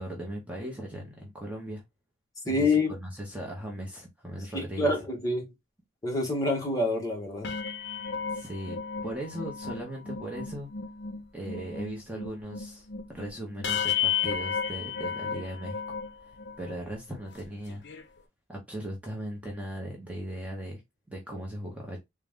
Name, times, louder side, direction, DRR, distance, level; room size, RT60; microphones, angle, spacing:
voice 1, 0.0-1.8 2.4-5.0 8.3-8.8 9.0-10.7 11.3-12.9 13.1-17.8 18.5-20.8 21.1-22.0, right 1 dB, 5° right, 0.8 m, -38 dB
voice 2, 2.5-2.9 4.5-5.5 6.0-7.5, left 2 dB, 20° left, 1.1 m, -27 dB
sound 1, 7.3-16.8 17.3-17.4 17.7-18.0, left 7 dB, 60° left, 0.6 m, -34 dB
3.8 x 2.3 x 3.5 m
head